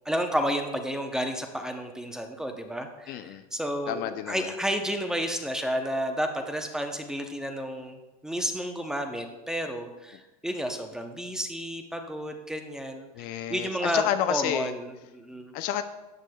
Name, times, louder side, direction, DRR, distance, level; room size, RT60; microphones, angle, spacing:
voice 1, 0.1-13.1 13.5-15.5, equal, 5° right, 5 dB, 0.7 m, -31 dB
voice 2, 3.1-3.4 3.9-4.5 13.1-14.7 15.5-15.8, left 11 dB, 50° left, 9 dB, 0.6 m, -30 dB
13.0 x 8.2 x 2.3 m, 1.1 s
supercardioid pair, 135°, 19 cm